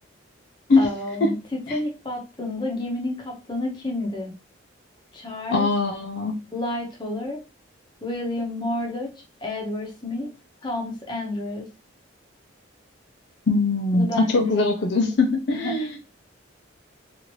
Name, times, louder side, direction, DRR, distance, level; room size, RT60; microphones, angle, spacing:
voice 1, 0.8-4.3 5.1-5.7 6.5-7.4 8.0-9.1 9.4-10.3 10.6-11.7 13.9-14.7 15.5-16.0, left 1 dB, 20° left, 0 dB, 0.7 m, -30 dB
voice 2, 5.5-6.3 13.5-16.0, left 3 dB, 55° left, 3 dB, 0.4 m, -21 dB
2.8 x 2.5 x 3.0 m, 0.31 s
head